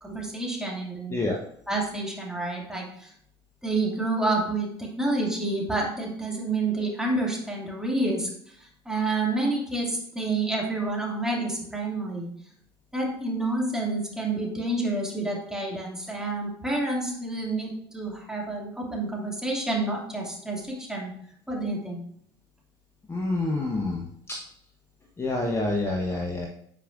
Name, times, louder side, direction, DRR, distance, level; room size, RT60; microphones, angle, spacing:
voice 1, 0.0-1.2 1.7-3.1 3.6-8.3 8.9-12.3 12.9-21.2 21.5-22.0, right 2 dB, 5° right, -3 dB, 2.5 m, -29 dB
voice 2, 23.1-24.4 25.2-26.5, left 2 dB, 20° left, -1 dB, 1.1 m, -27 dB
9.2 x 4.8 x 2.6 m, 0.66 s
hypercardioid pair, 70°, 14 cm